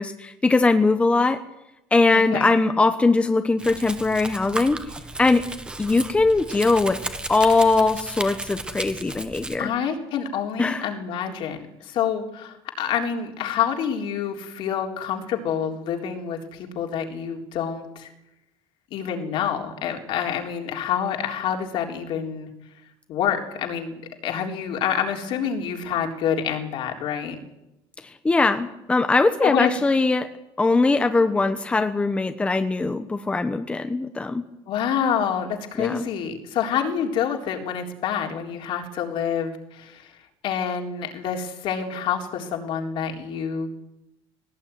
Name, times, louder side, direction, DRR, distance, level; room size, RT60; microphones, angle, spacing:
voice 1, 0.0-1.4 1.9-4.8 5.2-5.5 5.8-7.0 7.3-9.7 10.6-10.9 28.0-30.3 30.6-34.4 35.8-36.1, left 3 dB, 10° left, 8 dB, 1.1 m, -21 dB
voice 2, 2.1-2.6 9.6-18.1 18.9-22.5 23.1-23.9 24.2-27.4 29.4-29.7 34.7-40.1 40.4-43.8, left 8 dB, 60° left, 3 dB, 3.8 m, -27 dB
Domestic sounds home sounds, 3.6-9.6, right 2 dB, 10° right, 1.6 m, -35 dB
20.0 x 18.0 x 9.4 m, 0.89 s
cardioid pair, 160°, 10 cm